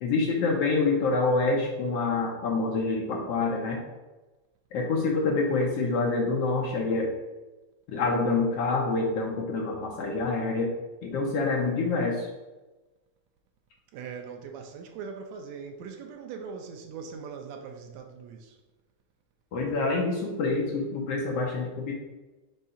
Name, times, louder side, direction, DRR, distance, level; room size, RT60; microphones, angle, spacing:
voice 1, 0.0-3.8 4.7-7.1 7.9-10.7 11.0-12.3 19.5-21.9, left 3 dB, 70° left, 1.6 m, -26 dB
voice 2, 13.9-18.6, right 6 dB, 80° right, 1.8 m, -41 dB
5.5 x 3.6 x 5.5 m
omnidirectional pair, 3.4 m